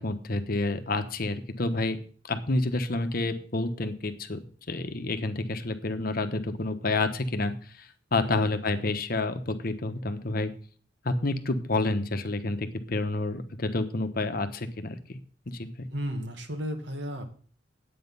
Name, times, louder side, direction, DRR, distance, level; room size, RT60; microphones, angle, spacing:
voice 1, 0.0-2.0 2.3-4.4 4.7-10.5 11.0-15.2 15.5-15.9, left 2 dB, 55° left, 9 dB, 1.1 m, -29 dB
voice 2, 15.9-17.3, equal, 70° right, 5 dB, 2.0 m, -34 dB
10.0 x 8.7 x 5.5 m, 0.43 s
head